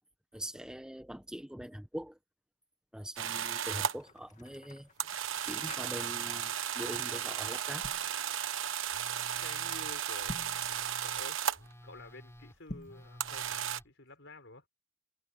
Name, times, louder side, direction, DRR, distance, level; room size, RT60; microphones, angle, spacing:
voice 1, 0.3-2.2 2.9-4.9 5.5-7.9, equal, 5° right, 0.9 m, -43 dB
sound 1, 3.2-4.0 5.0-11.7 13.2-13.8, right 9 dB, 70° right, 1.1 m, -35 dB
sound 2, 3.6-6.4 6.7-7.0 7.6-8.1 10.1-10.7 12.6-13.1, left 1 dB, 40° left, 2.3 m, -48 dB
Telephone, 8.9-13.9, equal, 15° left, 4.3 m, -54 dB
voice 2, 9.4-14.7, left 2 dB, 60° left, 6.3 m, -51 dB
head